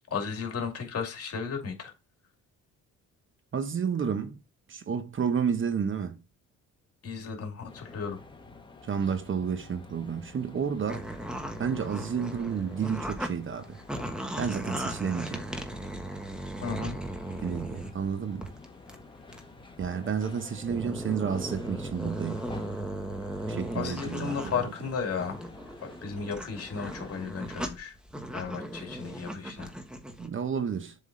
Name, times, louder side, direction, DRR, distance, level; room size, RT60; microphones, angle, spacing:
voice 1, 0.1-1.9 7.0-8.2 16.6-17.0 23.7-25.4 25.8-27.9 28.3-29.7, left 6 dB, 50° left, 2.3 m, -34 dB
voice 2, 3.5-4.4 4.7-6.2 8.8-11.1 11.6-13.8 14.4-15.5 17.4-18.5 19.8-22.4 23.5-24.5 30.2-31.0, right 7 dB, 40° right, 0.9 m, -31 dB
sound 1, 7.7-27.3, left 3 dB, 15° left, 1.2 m, -49 dB
sound 2, 10.9-13.3 13.6-18.0 18.4-18.6 18.9-19.0 19.3-19.4 19.8-19.9 20.5-24.6 25.0-30.3, right 1 dB, 5° right, 1.3 m, -37 dB
7.4 x 3.7 x 3.8 m
cardioid pair, 90°, 30 cm